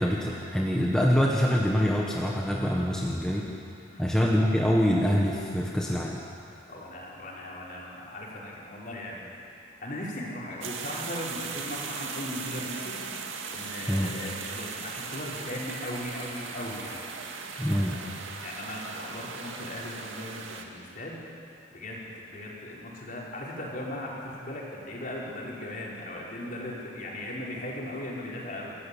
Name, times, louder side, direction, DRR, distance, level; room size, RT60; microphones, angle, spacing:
voice 1, 0.0-3.5 4.0-6.2 13.9-14.1 17.6-18.0, equal, 5° left, -3 dB, 1.5 m, -25 dB
voice 2, 6.7-13.0 13.5-17.1 18.4-21.2 21.7-22.1 22.3-28.8, left 1 dB, 45° left, -4 dB, 4.8 m, -38 dB
sound 1, 10.6-20.6, right 5 dB, 90° right, 2.0 m, -38 dB
28.0 x 14.0 x 8.6 m, 2.6 s
head